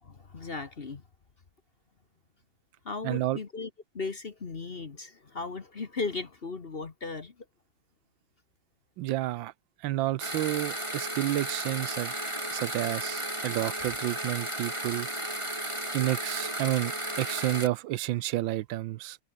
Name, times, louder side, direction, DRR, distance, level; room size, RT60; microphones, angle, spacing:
voice 1, 0.0-1.0 2.8-7.3, left 4 dB, 35° left, 1.3 m, -37 dB
voice 2, 3.0-3.4 9.0-9.5 9.8-12.2 12.5-15.1 15.9-16.9 17.2-19.2, right 15 dB, 85° right, 1.4 m, -30 dB
sound 1, 10.2-17.7, right 1 dB, 15° right, 4.4 m, -34 dB
omnidirectional pair, 2.1 m